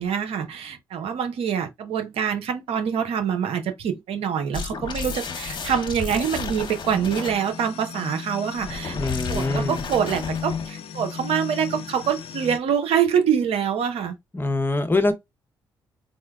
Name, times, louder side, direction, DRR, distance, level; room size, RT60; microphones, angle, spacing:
voice 1, 0.0-9.0 9.3-14.2, right 8 dB, 75° right, 0.8 m, -25 dB
sound 1, 4.1-12.6, left 7 dB, 70° left, 0.5 m, -37 dB
sound 2, 4.5-7.5 8.6-10.8, left 5 dB, 50° left, 0.9 m, -33 dB
voice 2, 8.9-9.8 14.3-15.1, left 2 dB, 20° left, 0.8 m, -24 dB
4.3 x 2.1 x 2.3 m
supercardioid pair, 50°, 10 cm